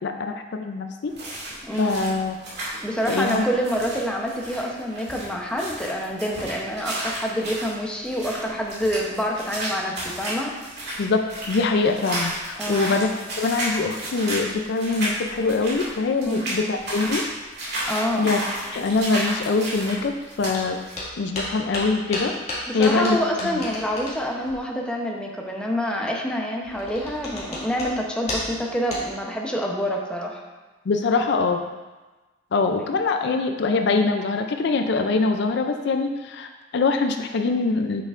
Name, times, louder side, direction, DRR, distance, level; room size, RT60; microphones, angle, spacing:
voice 1, 0.0-1.1 1.8-2.3 3.1-3.4 11.0-13.1 13.4-17.2 18.1-18.4 18.7-20.8 21.2-22.3 22.7-23.2 23.4-23.6 30.9-31.6 32.5-38.0, left 3 dB, 60° left, 5 dB, 0.4 m, -23 dB
sound 1, 1.1-21.0, right 1 dB, 55° right, 2.1 m, -32 dB
voice 2, 1.6-2.0 2.8-10.8 12.6-13.0 16.2-16.5 17.9-18.3 22.7-30.4 32.8-32.9, equal, 5° left, -1 dB, 0.7 m, -27 dB
sound 2, 20.5-20.6 20.9-24.6 26.6-27.9 28.2-28.6 28.9-29.1, left 1 dB, 35° left, 1.9 m, -33 dB
8.2 x 6.5 x 2.5 m, 1.2 s
head